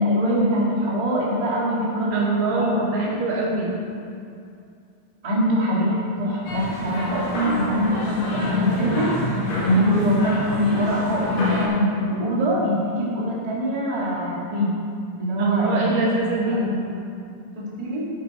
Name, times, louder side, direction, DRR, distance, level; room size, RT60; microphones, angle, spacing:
voice 1, 0.0-2.7 3.0-3.1 3.5-3.6 5.2-14.7 15.2-15.9 16.5-16.8 17.5-18.0, equal, 15° right, -6 dB, 1.6 m, -23 dB
voice 2, 2.1-3.8 15.4-16.6, right 3 dB, 70° right, -1 dB, 2.3 m, -23 dB
sound 1, 6.5-11.7, left 2 dB, 65° left, 3.6 m, -27 dB
13.5 x 8.4 x 4.4 m, 2.4 s
omnidirectional pair, 4.2 m